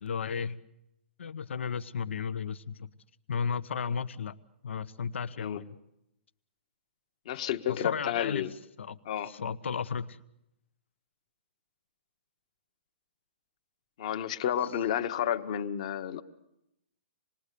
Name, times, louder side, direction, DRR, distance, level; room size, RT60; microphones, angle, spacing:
voice 1, 0.0-0.6 1.2-2.9 3.3-4.4 4.6-5.7 7.3-7.4 7.7-9.0 9.2-10.2, left 6 dB, 80° left, 14 dB, 0.9 m, -34 dB
voice 2, 7.3-8.5 9.1-9.3 14.0-16.2, left 10 dB, 35° left, 11 dB, 1.1 m, -31 dB
27.0 x 20.5 x 8.4 m, 0.83 s
hypercardioid pair, 175°, 6 cm